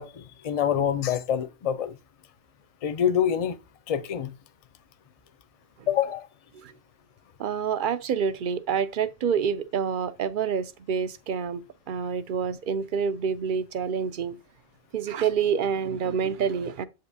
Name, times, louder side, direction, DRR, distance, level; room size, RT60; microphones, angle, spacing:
voice 1, 0.0-2.0 2.8-3.6 3.9-4.3 5.9-6.3, left 9 dB, 45° left, 0.5 m, -26 dB
voice 2, 7.4-14.4 14.9-16.8, right 7 dB, 60° right, 0.6 m, -27 dB
7.9 x 5.2 x 2.7 m
omnidirectional pair, 1.1 m